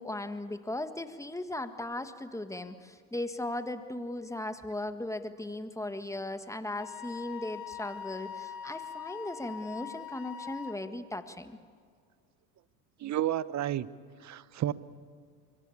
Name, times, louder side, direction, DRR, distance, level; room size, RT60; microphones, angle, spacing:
voice 1, 0.0-11.6, left 1 dB, 5° left, 9 dB, 1.7 m, -37 dB
Wind instrument woodwind instrument, 6.8-10.8, left 8 dB, 45° left, 2.2 m, -42 dB
voice 2, 13.0-13.9 14.2-14.7, right 12 dB, 35° right, 17 dB, 1.0 m, -31 dB
25.0 x 23.5 x 8.5 m, 2.1 s
hypercardioid pair, 85°, 48 cm